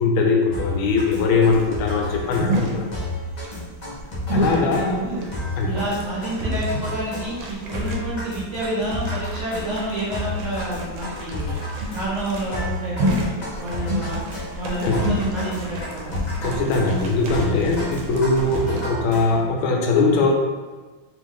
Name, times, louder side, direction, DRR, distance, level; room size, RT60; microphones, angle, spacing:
voice 1, 0.0-2.9 4.3-4.9 5.6-5.7 14.8-15.0 16.4-20.3, left 3 dB, 85° left, 1 dB, 1.4 m, -21 dB
sound 1, 0.5-19.6, left 1 dB, 70° left, 0.4 m, -31 dB
sound 2, 0.9-18.8, right 1 dB, 75° right, 1.4 m, -31 dB
voice 2, 4.6-5.3 5.7-11.5 11.9-13.3 13.6-14.2 14.5-16.2, right 1 dB, 60° right, -7 dB, 0.8 m, -29 dB
3.5 x 3.1 x 3.6 m, 1.3 s
omnidirectional pair, 2.2 m